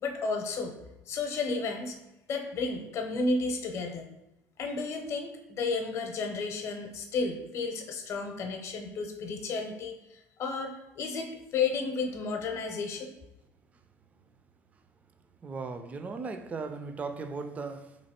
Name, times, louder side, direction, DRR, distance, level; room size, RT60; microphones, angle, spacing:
voice 1, 0.0-0.8 1.1-2.0 2.3-4.1 4.6-10.0 10.4-13.1, left 4 dB, 50° left, 0.7 m, -32 dB
voice 2, 15.4-18.0, right 4 dB, 25° right, 0.3 m, -37 dB
3.0 x 2.8 x 4.2 m
cardioid pair, 115°, 6 cm